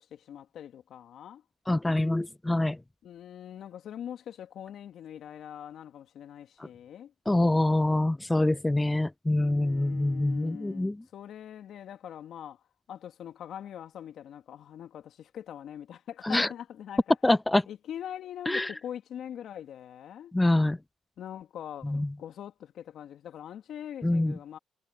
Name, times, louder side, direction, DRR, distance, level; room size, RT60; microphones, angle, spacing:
voice 1, 0.0-1.4 3.0-7.1 9.3-12.6 12.9-17.2 17.7-20.3 21.2-24.6, left 10 dB, 70° left, 2.2 m, -43 dB
voice 2, 1.7-2.8 7.3-10.9 16.3-16.5 17.2-17.6 18.5-18.7 20.3-20.8 21.9-22.1 24.0-24.3, left 1 dB, 15° left, 0.5 m, -25 dB
supercardioid pair, 55°, 0 cm